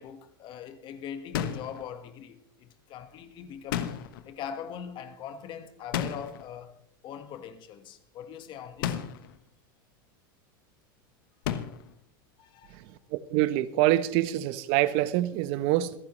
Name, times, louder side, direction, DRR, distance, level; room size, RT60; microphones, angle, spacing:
voice 1, 0.0-3.9 4.2-9.0 12.4-12.8, left 8 dB, 45° left, 1.6 m, -42 dB
sound 1, 1.3-1.8 3.7-4.3 5.9-6.5 8.8-9.3 11.4-11.9, left 10 dB, 70° left, 1.2 m, -32 dB
voice 2, 13.1-15.9, right 15 dB, 55° right, 0.9 m, -25 dB
26.5 x 9.6 x 3.2 m
supercardioid pair, 115°, 12 cm